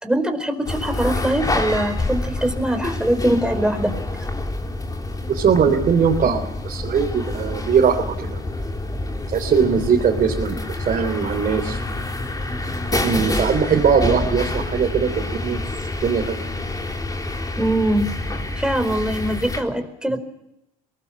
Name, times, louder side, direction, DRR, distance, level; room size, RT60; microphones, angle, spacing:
voice 1, 0.0-3.9 17.6-18.1 18.6-20.2, right 1 dB, 5° right, 7 dB, 4.5 m, -22 dB
sound 1, 0.7-19.6, left 2 dB, 20° left, 3.7 m, -27 dB
voice 2, 5.3-8.4 9.3-10.6 10.9-11.8 13.0-15.6 16.0-16.4, right 6 dB, 50° right, 0 dB, 3.7 m, -20 dB
23.0 x 19.0 x 7.2 m, 0.88 s
supercardioid pair, 75°, 18 cm